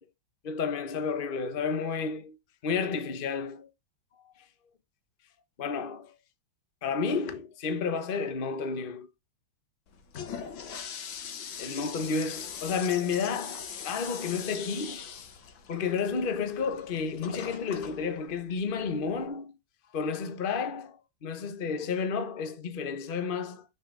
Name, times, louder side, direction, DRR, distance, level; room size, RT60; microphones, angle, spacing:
voice 1, 0.4-2.4 2.6-3.7 5.6-6.1 6.8-9.1 10.1-10.3 11.6-15.0 15.7-19.5 19.9-23.6, left 5 dB, 35° left, 1.0 m, -31 dB
Toilet flush, 9.9-19.3, left 7 dB, 80° left, 2.0 m, -42 dB
10.5 x 6.1 x 3.7 m
omnidirectional pair, 2.1 m